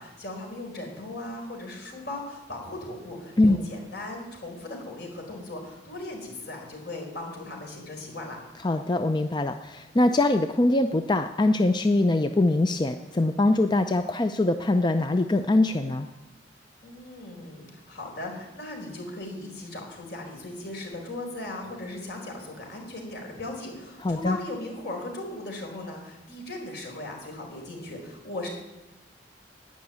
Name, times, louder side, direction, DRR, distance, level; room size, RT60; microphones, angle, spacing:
voice 1, 0.0-8.4 16.8-28.5, left 2 dB, 65° left, 1 dB, 4.6 m, -38 dB
voice 2, 8.6-16.1 24.0-24.4, left 2 dB, 25° left, 8 dB, 0.5 m, -23 dB
12.0 x 9.7 x 9.4 m, 1.0 s
head